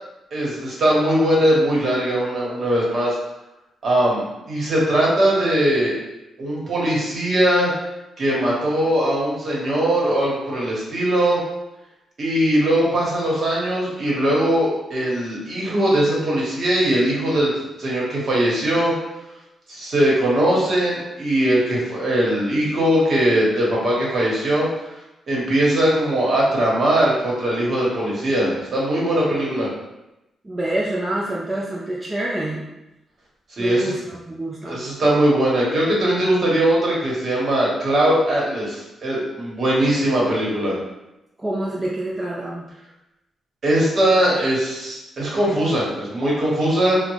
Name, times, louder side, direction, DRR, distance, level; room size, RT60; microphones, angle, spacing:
voice 1, 0.3-3.2 3.8-6.0 6.4-7.7 8.2-11.4 12.2-17.5 17.8-18.9 19.7-24.7 25.3-29.7 33.6-33.9 34.7-40.8 43.6-47.0, right 1 dB, 45° right, -4 dB, 1.2 m, -20 dB
voice 2, 30.4-32.7 33.6-34.8 41.4-42.6, right 1 dB, 15° right, -5 dB, 0.4 m, -26 dB
3.7 x 2.1 x 3.1 m, 0.93 s
wide cardioid pair, 140°, 0 cm